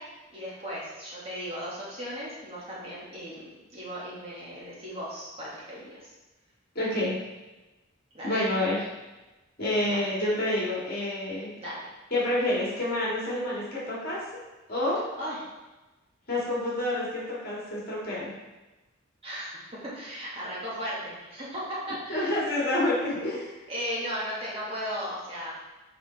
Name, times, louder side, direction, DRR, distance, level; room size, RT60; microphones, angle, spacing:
voice 1, 0.0-6.1 8.1-8.4 9.9-10.1 11.6-11.9 15.2-15.4 19.2-22.3 23.7-25.5, equal, 30° right, -8 dB, 1.7 m, -36 dB
voice 2, 6.8-7.1 8.2-8.8 9.6-11.5 12.1-14.2 14.7-15.0 16.3-18.3 22.1-23.6, left 1 dB, 45° left, -6 dB, 1.9 m, -28 dB
6.8 x 4.9 x 3.3 m, 1.1 s
head